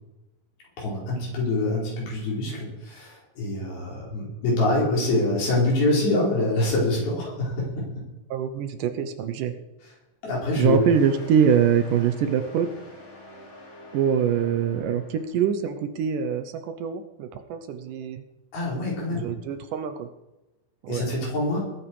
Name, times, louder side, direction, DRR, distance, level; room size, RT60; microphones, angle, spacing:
voice 1, 0.8-7.9 10.2-10.8 18.5-19.3 20.9-21.7, left 2 dB, 85° left, -4 dB, 7.0 m, -25 dB
voice 2, 8.3-9.6 10.6-12.7 13.9-18.2 19.1-20.1 20.8-21.1, right 8 dB, 70° right, 9 dB, 2.3 m, -24 dB
sound 1, 10.4-15.5, left 1 dB, 40° left, 5.1 m, -46 dB
21.0 x 9.4 x 4.8 m, 1.0 s
omnidirectional pair, 4.2 m